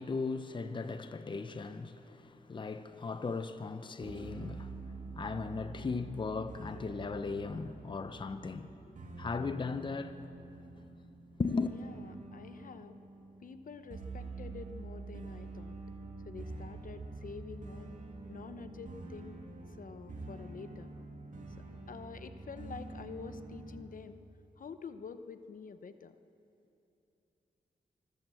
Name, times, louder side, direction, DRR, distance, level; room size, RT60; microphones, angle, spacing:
voice 1, 0.0-8.9 9.2-10.2 11.4-11.7, left 4 dB, 30° left, 0.7 m, -37 dB
sound 1, 4.0-23.8, right 3 dB, 55° right, 2.5 m, -47 dB
voice 2, 11.7-13.0 13.4-15.8 16.2-18.0 18.3-20.9 21.6-24.2 24.6-26.2, left 5 dB, 60° left, 0.9 m, -48 dB
24.5 x 14.0 x 7.8 m
wide cardioid pair, 100°, 16 cm